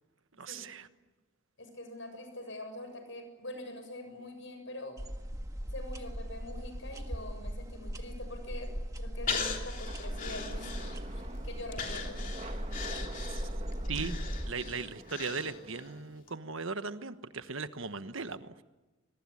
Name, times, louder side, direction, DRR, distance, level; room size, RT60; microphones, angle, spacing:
voice 1, 0.4-0.9 13.3-13.4 13.9-14.1 14.4-18.5, right 4 dB, 70° right, 11 dB, 1.3 m, -38 dB
voice 2, 1.6-5.0 5.6-10.8 11.1-12.2, left 1 dB, 65° left, 7 dB, 7.3 m, -44 dB
sound 1, 5.0-14.5, equal, 15° right, 1.6 m, -39 dB
Breathing, 9.3-11.2 11.7-15.9 16.3-16.4, left 5 dB, 40° left, 3.2 m, -39 dB
sound 2, 9.9-16.0, right 2 dB, 30° right, 1.9 m, -47 dB
25.0 x 23.0 x 9.8 m, 1.1 s
head